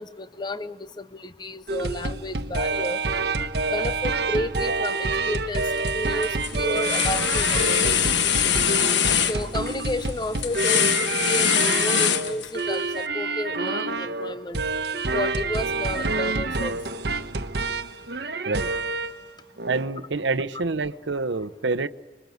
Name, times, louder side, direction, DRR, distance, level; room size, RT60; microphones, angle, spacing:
voice 1, 0.0-3.0 3.7-5.7 5.9-8.6 9.3-14.6 15.1-16.8, left 1 dB, 25° left, 13 dB, 0.8 m, -32 dB
sound 1, 1.7-19.2 19.6-19.9, right 3 dB, 65° right, 1.2 m, -28 dB
sound 2, 5.6-5.9 6.2-12.8, left 8 dB, 80° left, 1.3 m, -23 dB
voice 2, 19.7-21.9, right 3 dB, 90° right, 14 dB, 0.9 m, -27 dB
26.0 x 22.5 x 9.4 m, 1.3 s
head